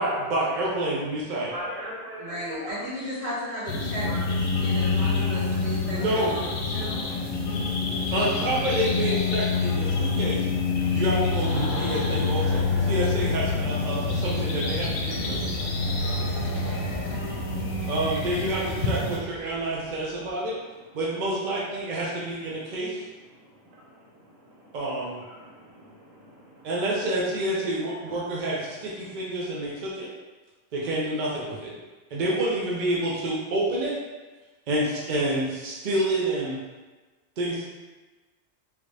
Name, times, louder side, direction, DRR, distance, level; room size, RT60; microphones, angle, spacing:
voice 1, 0.0-1.5 5.9-6.4 8.1-10.4 10.9-15.4 17.9-20.5 20.9-23.0 24.7-25.2 26.6-30.1 30.7-31.7 32.1-34.0 34.7-36.6 37.4-37.6, right 1 dB, 50° right, -5 dB, 0.6 m, -28 dB
voice 2, 1.5-2.8 4.1-4.2 4.6-5.4 5.9-6.1 7.0-7.2 20.4-20.9 22.5-22.8 23.2-26.8 27.9-29.2, equal, 85° right, -4 dB, 1.2 m, -44 dB
voice 3, 2.2-4.1 4.6-7.0, equal, 30° right, -9 dB, 1.2 m, -35 dB
sound 1, 3.7-19.2, left 4 dB, 85° left, 1.0 m, -27 dB
sound 2, 11.3-19.8 20.1-20.3, right 1 dB, 10° left, 1.0 m, -38 dB
3.2 x 2.5 x 3.1 m, 1.2 s
omnidirectional pair, 1.4 m